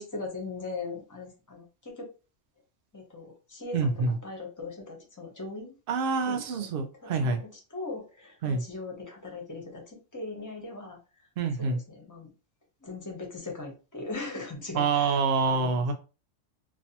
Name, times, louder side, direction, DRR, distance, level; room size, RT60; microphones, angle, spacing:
voice 1, 0.0-2.1 2.9-5.8 6.2-6.7 7.0-11.0 11.6-12.3 12.8-15.8, left 3 dB, 20° left, 0.5 m, -40 dB
voice 2, 3.7-4.2 5.9-7.4 8.4-8.6 11.4-11.8 14.7-15.9, right 4 dB, 60° right, 0.6 m, -26 dB
2.5 x 2.1 x 2.7 m
omnidirectional pair, 1.3 m